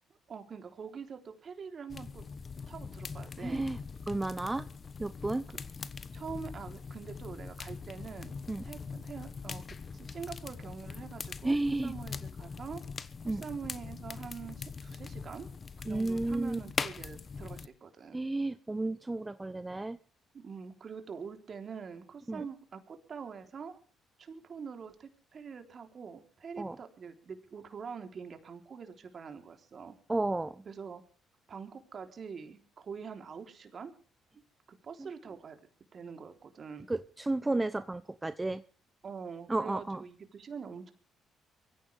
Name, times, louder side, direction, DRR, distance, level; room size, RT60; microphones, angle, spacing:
voice 1, 0.3-2.2 2.7-3.7 6.1-8.4 8.6-9.6 9.9-11.6 11.8-12.8 13.2-15.5 15.8-18.2 20.4-23.8 24.2-30.0 30.7-31.0 31.5-33.9 34.7-35.6 35.9-36.9 39.0-40.9, right 6 dB, 50° right, 6 dB, 3.5 m, -44 dB
sound 1, 1.9-17.7, left 5 dB, 40° left, 1.2 m, -42 dB
voice 2, 3.4-3.8 4.1-4.7 5.0-5.5 8.5-8.6 11.4-11.9 13.2-13.4 15.9-16.6 18.1-20.0 22.3-22.4 26.6-26.8 30.1-30.6 36.9-38.6 39.5-40.0, right 2 dB, 20° right, 13 dB, 0.8 m, -32 dB
24.0 x 15.0 x 3.5 m, 0.41 s
hypercardioid pair, 55°, 0 cm